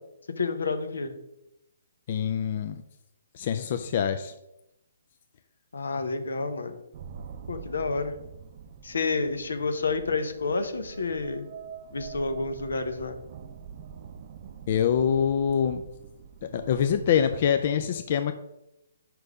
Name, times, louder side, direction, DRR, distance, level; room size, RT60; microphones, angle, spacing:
voice 1, 0.4-1.1 5.7-6.8 7.5-8.1 8.8-11.5 11.9-13.2, left 3 dB, 80° left, 9 dB, 0.8 m, -29 dB
voice 2, 2.1-2.8 3.3-4.3 14.7-15.8 16.5-18.3, left 8 dB, 50° left, 8 dB, 0.4 m, -25 dB
sound 1, 6.9-17.6, right 7 dB, 45° right, 0.5 m, -45 dB
5.2 x 4.6 x 4.8 m, 0.86 s
hypercardioid pair, 145°, 0 cm